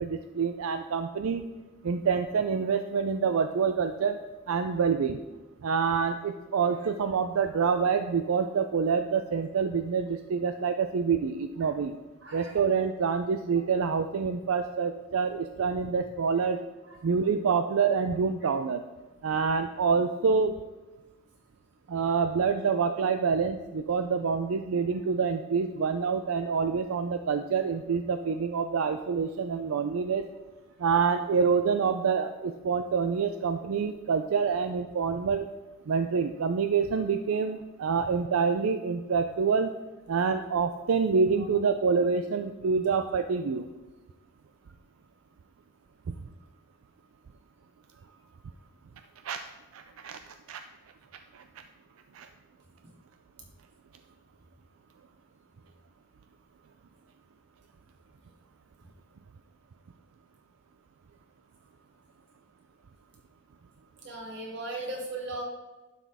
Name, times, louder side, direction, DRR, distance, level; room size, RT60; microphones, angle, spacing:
voice 1, 0.0-1.4 1.8-4.2 4.5-5.2 5.6-12.0 12.3-16.6 17.0-18.8 19.2-20.6 21.9-30.2 30.8-35.5 35.9-39.7 40.1-43.7 46.1-46.2 49.2-49.4 49.7-50.6 51.3-51.4 52.1-52.3, right 5 dB, 85° right, 8 dB, 0.4 m, -27 dB
voice 2, 12.2-12.6 16.8-17.0 41.4-41.5 42.9-43.0 64.0-65.4, right 2 dB, 55° right, -2 dB, 2.4 m, -38 dB
11.5 x 6.1 x 3.5 m, 1.2 s
head